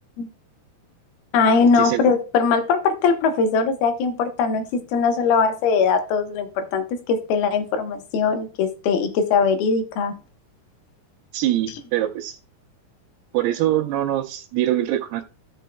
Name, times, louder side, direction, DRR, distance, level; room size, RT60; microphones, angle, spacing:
voice 1, 1.3-10.1, left 5 dB, 75° left, 2.7 m, -21 dB
voice 2, 11.3-12.4 13.3-15.2, right 13 dB, 80° right, 2.8 m, -23 dB
14.5 x 6.2 x 2.2 m
omnidirectional pair, 4.7 m